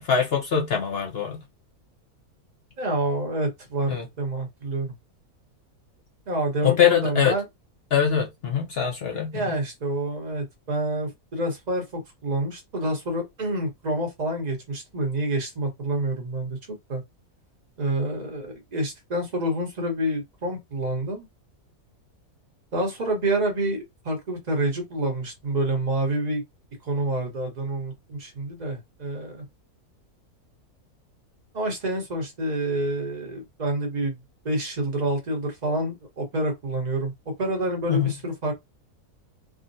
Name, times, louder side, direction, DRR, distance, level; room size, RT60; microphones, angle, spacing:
voice 1, 0.0-1.4 3.9-4.0 6.6-7.3 7.9-9.4 37.9-38.1, left 8 dB, 55° left, 0.7 m, -23 dB
voice 2, 2.8-4.9 6.3-7.4 9.3-16.6 16.9-17.0 17.8-21.3 22.7-26.4 26.8-29.4 31.5-34.2 34.4-37.1 37.4-38.5, right 1 dB, 30° right, 1.0 m, -28 dB
3.6 x 2.1 x 2.6 m
omnidirectional pair, 1.6 m